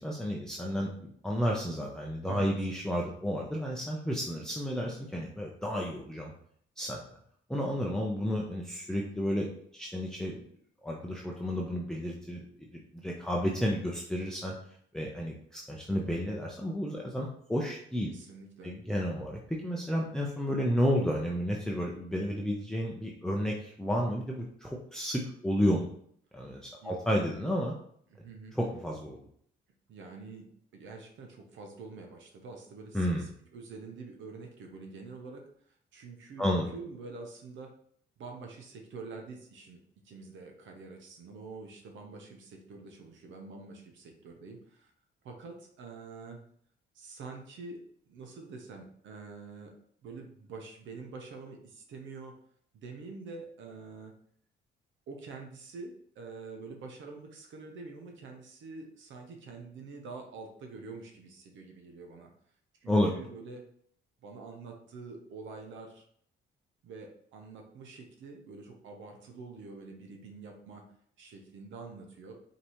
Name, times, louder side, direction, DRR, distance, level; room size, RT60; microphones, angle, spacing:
voice 1, 0.0-6.3 6.8-7.0 7.5-9.5 9.7-10.4 10.8-12.7 12.9-14.5 14.9-18.1 18.6-25.9 26.3-27.7 28.5-29.3 32.9-33.2 36.4-36.7 62.9-63.1, equal, 5° left, -2 dB, 0.6 m, -31 dB
voice 2, 18.1-18.7 26.4-26.5 26.8-26.9 28.1-28.6 29.9-35.5 35.9-37.7 38.2-39.8 40.0-44.9 45.2-46.4 46.9-47.8 48.1-49.8 50.0-52.4 52.7-54.1 55.1-62.3 62.8-63.6 64.2-66.1 66.8-70.9 71.2-72.3, right 4 dB, 75° right, 2 dB, 0.8 m, -46 dB
5.2 x 2.8 x 3.0 m, 0.64 s
cardioid pair, 90°, 20 cm